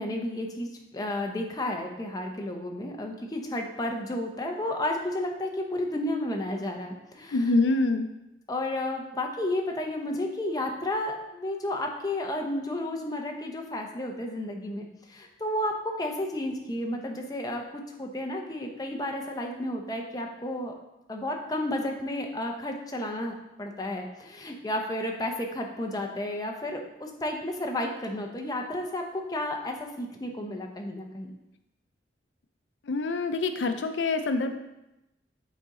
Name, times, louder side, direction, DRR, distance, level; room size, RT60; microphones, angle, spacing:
voice 1, 0.0-7.4 8.5-20.7 21.1-31.3, left 1 dB, 20° left, 2 dB, 0.7 m, -32 dB
voice 2, 7.3-8.1 32.8-34.6, left 3 dB, 80° left, 8 dB, 0.5 m, -25 dB
8.3 x 3.9 x 3.7 m, 0.92 s
head